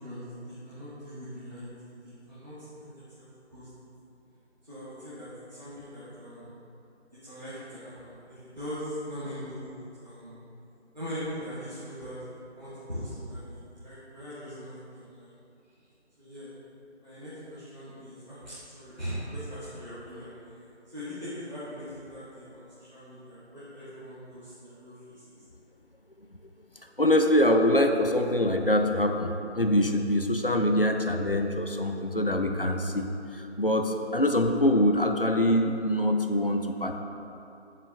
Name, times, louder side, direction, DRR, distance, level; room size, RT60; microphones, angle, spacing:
voice 1, 0.0-3.7 4.6-6.5 7.2-10.3 10.9-15.3 16.2-16.5 17.0-20.5 20.9-25.3, equal, 40° right, -13 dB, 1.4 m, -41 dB
voice 2, 27.0-37.0, left 1 dB, 55° left, 4 dB, 0.4 m, -24 dB
7.3 x 5.4 x 3.3 m, 2.7 s
figure-of-eight pair, 180°, 35 cm